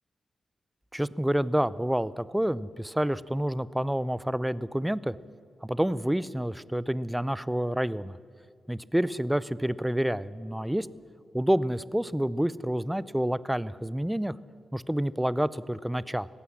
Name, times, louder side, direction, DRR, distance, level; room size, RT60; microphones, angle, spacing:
voice 1, 0.9-5.1 5.6-8.2 8.7-10.9 11.3-14.3 14.7-16.3, right 1 dB, 5° right, 18 dB, 0.6 m, -28 dB
18.0 x 16.0 x 10.0 m, 2.1 s
wide cardioid pair, 105°, 0 cm